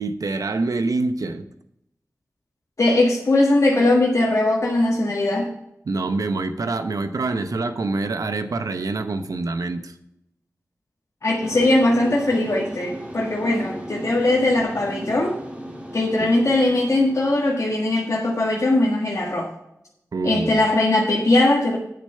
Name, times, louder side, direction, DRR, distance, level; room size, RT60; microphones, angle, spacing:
voice 1, 0.0-1.5 5.9-9.9 16.2-16.3 20.1-20.7, right 3 dB, 80° right, 9 dB, 0.8 m, -26 dB
voice 2, 2.8-5.5 11.2-15.4 15.9-19.5 20.2-21.8, left 2 dB, 65° left, -4 dB, 1.6 m, -20 dB
sound 1, 11.4-18.6, right 1 dB, 20° right, 2.1 m, -37 dB
8.8 x 6.8 x 5.6 m, 0.81 s
wide cardioid pair, 90°, 6 cm